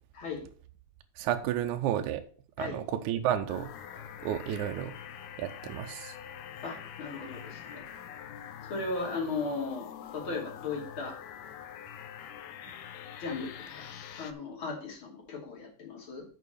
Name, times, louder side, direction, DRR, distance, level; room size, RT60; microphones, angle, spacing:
voice 1, 1.2-2.2 2.6-4.9 5.4-6.1, right 11 dB, 75° right, 7 dB, 1.9 m, -32 dB
sound 1, 3.5-14.3, left 9 dB, 80° left, 1.8 m, -45 dB
voice 2, 6.6-7.9 8.7-9.9 10.1-11.2 13.2-16.2, left 3 dB, 40° left, -1 dB, 3.0 m, -37 dB
7.0 x 6.0 x 6.5 m, 0.42 s
omnidirectional pair, 4.1 m